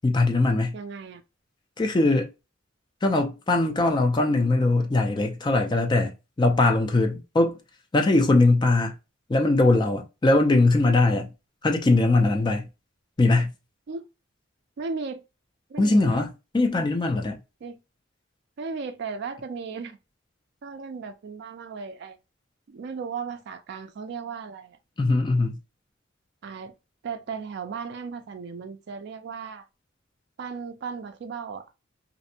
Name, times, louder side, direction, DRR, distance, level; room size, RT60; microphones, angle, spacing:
voice 1, 0.0-0.7 1.8-2.3 3.0-6.1 6.4-7.6 7.9-8.9 9.3-11.3 11.6-12.7 13.2-13.5 15.8-17.4 25.0-25.6, left 2 dB, 20° left, 0.4 m, -21 dB
voice 2, 0.7-1.2 13.9-14.0 14.8-15.2 15.7-16.2 17.6-17.8 18.6-20.0 20.6-22.2 22.7-24.8 26.4-26.7 27.0-29.7 30.4-31.7, right 5 dB, 55° right, 0.3 m, -36 dB
2.5 x 2.1 x 2.7 m
head